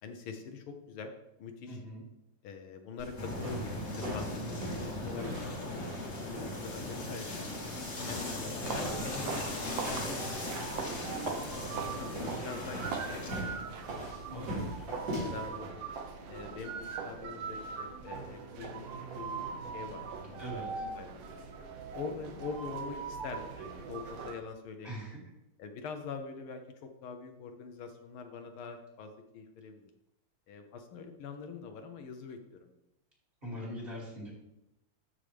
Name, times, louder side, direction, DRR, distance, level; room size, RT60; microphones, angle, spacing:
voice 1, 0.0-1.1 1.4-1.8 2.4-5.9 6.2-7.5 8.1-13.7 14.3-14.7 15.0-15.9 16.3-18.9 19.2-21.2 21.9-25.0 25.6-29.9 30.5-32.7, left 5 dB, 80° left, 6 dB, 1.6 m, -44 dB
voice 2, 1.7-2.0 14.3-14.7 20.4-20.9 24.8-25.3 33.4-34.3, equal, 25° right, -5 dB, 3.1 m, -42 dB
sound 1, 3.0-15.5, equal, 45° right, 4.3 m, -43 dB
sound 2, 3.2-13.4, left 1 dB, 35° left, 1.4 m, -38 dB
sound 3, 8.6-24.4, right 5 dB, 65° right, 1.6 m, -40 dB
12.5 x 5.2 x 3.3 m, 0.88 s
omnidirectional pair, 2.4 m